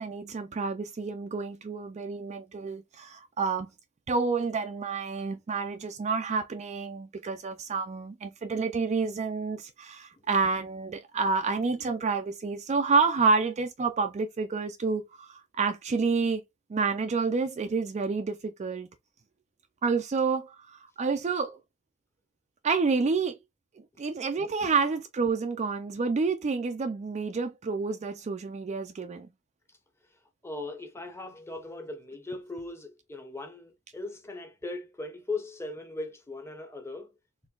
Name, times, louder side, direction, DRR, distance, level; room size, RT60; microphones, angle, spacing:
voice 1, 0.0-3.7 4.1-16.4 16.7-18.9 19.8-21.6 22.6-23.4 24.0-29.3, right 4 dB, 30° right, 0.3 m, -29 dB
voice 2, 30.4-37.1, left 2 dB, 10° left, 0.7 m, -38 dB
4.3 x 3.1 x 2.3 m
head